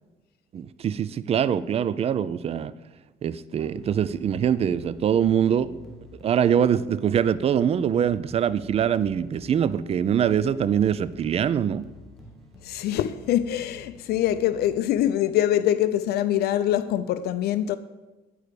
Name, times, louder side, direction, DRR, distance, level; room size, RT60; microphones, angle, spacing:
voice 1, 0.5-2.7 3.2-5.8 6.2-11.9, right 8 dB, 35° right, 0.4 m, -23 dB
sound 1, 3.7-15.2, left 2 dB, ahead, 1.4 m, -50 dB
voice 2, 12.6-17.8, left 11 dB, 70° left, 0.5 m, -24 dB
8.6 x 4.7 x 6.6 m
cardioid pair, 110°, 17 cm